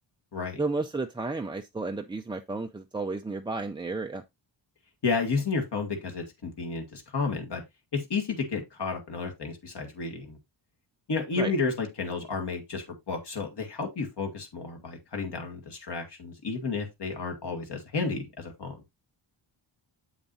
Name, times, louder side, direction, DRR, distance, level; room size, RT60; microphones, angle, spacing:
voice 1, 0.6-4.2 11.4-11.5, right 3 dB, 10° right, 0.3 m, -32 dB
voice 2, 5.0-7.6 7.9-10.4 11.1-18.8, left 4 dB, 60° left, 1.8 m, -31 dB
8.0 x 7.1 x 2.5 m
wide cardioid pair, 170°, 47 cm